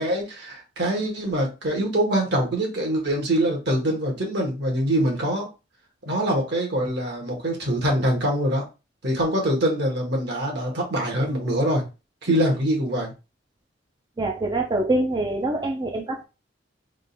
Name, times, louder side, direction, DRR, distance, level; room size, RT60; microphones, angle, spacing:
voice 1, 0.0-5.5 6.0-8.6 9.0-11.8 12.2-13.1, right 1 dB, 60° right, 1.4 m, -24 dB
voice 2, 14.2-16.2, right 2 dB, 25° right, 0.4 m, -25 dB
3.7 x 2.5 x 4.0 m
head